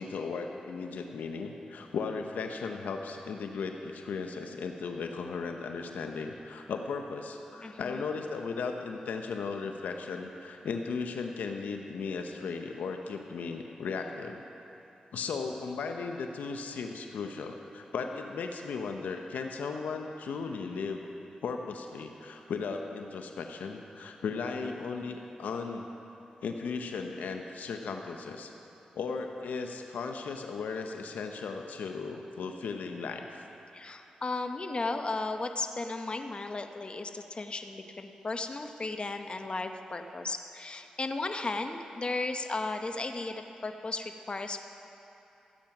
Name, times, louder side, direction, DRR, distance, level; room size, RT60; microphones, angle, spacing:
voice 1, 0.0-14.4 15.1-21.0 21.4-25.9 26.4-28.5 28.9-33.4, left 5 dB, 85° left, 4 dB, 0.7 m, -36 dB
voice 2, 7.6-8.1 33.7-44.6, left 3 dB, 40° left, 6 dB, 0.8 m, -35 dB
15.0 x 8.6 x 5.9 m, 2.9 s
cardioid pair, 50°, 3 cm